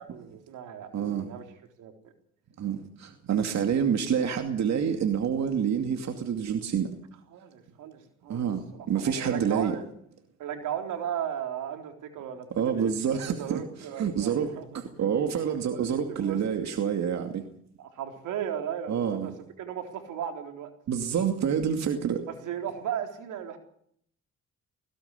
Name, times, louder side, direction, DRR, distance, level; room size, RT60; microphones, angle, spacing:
voice 1, 0.0-1.4 1.8-1.9 7.3-8.4 8.7-9.8 10.4-14.7 15.5-16.7 17.8-19.3 19.6-20.7 22.3-23.6, right 9 dB, 85° right, 4 dB, 3.9 m, -36 dB
voice 2, 0.9-1.3 2.6-6.9 8.3-9.7 12.5-13.6 14.0-17.5 18.9-19.3 20.9-22.2, right 7 dB, 65° right, 5 dB, 2.5 m, -27 dB
20.0 x 17.0 x 8.5 m, 0.68 s
cardioid pair, 90°, 30 cm